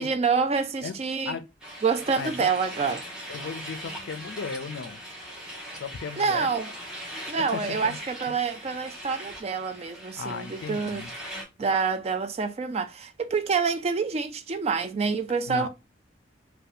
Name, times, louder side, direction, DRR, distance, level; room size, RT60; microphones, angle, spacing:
voice 1, 0.0-1.4 1.8-3.1 6.2-6.7 7.3-11.1 11.6-15.7, right 5 dB, 30° right, 0.3 m, -27 dB
sound 1, 1.6-11.4, equal, 5° right, 0.8 m, -40 dB
voice 2, 2.2-2.5 3.3-5.0 5.8-6.5 7.4-8.0 10.2-11.1 15.5-15.7, left 5 dB, 75° left, 0.4 m, -35 dB
2.6 x 2.2 x 3.9 m
head